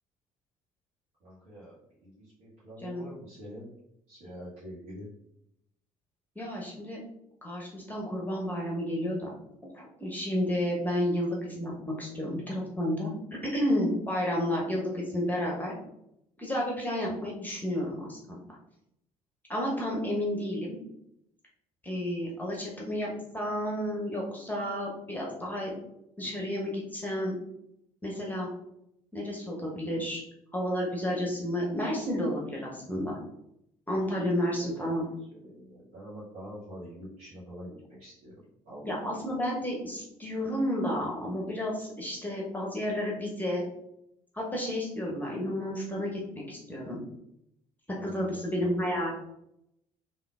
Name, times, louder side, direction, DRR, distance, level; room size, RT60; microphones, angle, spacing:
voice 1, 1.2-3.7 4.1-5.1 34.0-39.2 47.9-49.1, equal, 60° right, -9 dB, 1.1 m, -46 dB
voice 2, 6.4-7.0 7.4-9.3 9.7-13.1 13.4-15.7 16.4-18.4 19.5-20.8 21.8-25.7 26.2-27.4 28.0-28.5 29.1-30.2 30.5-33.2 33.9-35.0 38.8-43.6 44.3-47.0 48.0-49.1, equal, 10° left, -2 dB, 0.9 m, -31 dB
3.6 x 2.5 x 2.4 m, 0.79 s
figure-of-eight pair, 50°, 18 cm